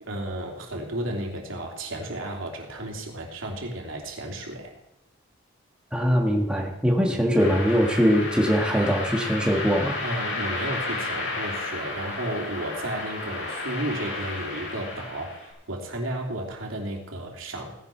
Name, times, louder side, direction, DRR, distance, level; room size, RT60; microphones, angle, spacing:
voice 1, 0.0-4.7 10.0-17.7, right 1 dB, 75° right, 1 dB, 2.9 m, -33 dB
voice 2, 5.9-10.0, equal, 5° right, 0 dB, 1.6 m, -22 dB
sound 1, 7.4-15.5, left 3 dB, 65° left, 6.2 m, -32 dB
17.0 x 10.5 x 4.5 m, 0.89 s
head